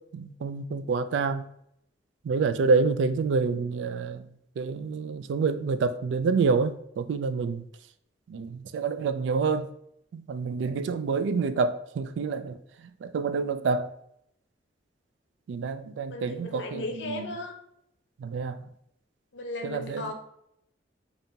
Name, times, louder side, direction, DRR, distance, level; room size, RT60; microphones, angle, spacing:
voice 1, 0.1-1.5 2.2-4.3 4.6-7.6 8.3-9.7 10.1-12.6 13.0-13.9 15.5-17.3 18.2-18.6 19.6-20.1, right 4 dB, 85° right, 0.3 m, -27 dB
voice 2, 16.1-17.5 19.3-20.1, left 2 dB, 80° left, 0.6 m, -36 dB
5.1 x 2.5 x 2.8 m
head